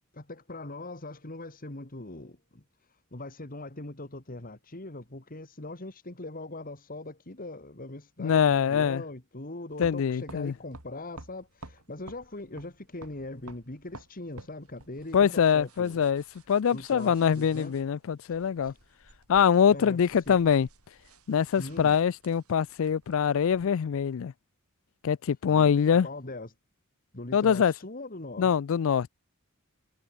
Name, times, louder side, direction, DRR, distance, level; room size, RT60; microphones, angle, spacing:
voice 1, 0.1-16.0 16.7-17.7 18.3-18.8 19.7-20.4 21.6-21.9 25.5-25.7 26.0-26.5 27.1-28.5, left 2 dB, 40° left, 2.4 m, -41 dB
voice 2, 8.2-9.0 9.8-10.5 15.1-18.7 19.3-20.7 21.3-24.3 25.0-26.1 27.3-27.7 28.4-29.1, left 7 dB, 65° left, 0.4 m, -24 dB
sound 1, 9.7-23.7, right 2 dB, 80° right, 5.9 m, -53 dB
head